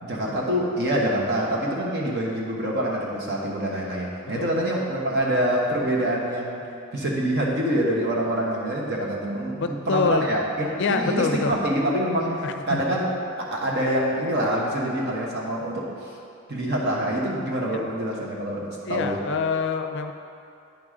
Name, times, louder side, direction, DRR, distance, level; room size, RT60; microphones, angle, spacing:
voice 1, 0.0-6.6 6.9-16.2 16.5-19.2, right 1 dB, 55° right, -3 dB, 1.2 m, -26 dB
voice 2, 9.5-10.4 10.8-11.6 12.4-12.8 17.7-17.8 18.8-20.1, left 4 dB, 60° left, 7 dB, 0.4 m, -26 dB
8.8 x 4.9 x 3.7 m, 2.5 s
head